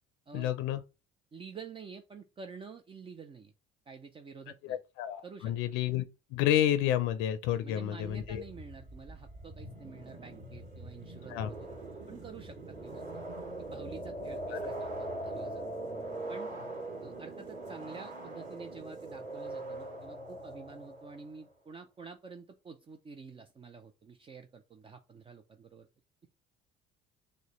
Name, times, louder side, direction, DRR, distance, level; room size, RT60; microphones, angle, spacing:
voice 1, 0.3-0.8 4.6-6.0 6.3-8.4 11.3-11.5 14.5-14.6, left 11 dB, 80° left, 0.5 m, -30 dB
voice 2, 1.3-3.5 3.9-4.8 5.2-5.5 7.5-11.7 12.1-13.0 13.6-15.6 16.3-16.5 17.0-25.9, right 5 dB, 25° right, 0.5 m, -49 dB
sound 1, 8.0-21.4, right 2 dB, 45° right, 2.6 m, -42 dB
6.3 x 2.2 x 3.1 m
cardioid pair, 100°, 20 cm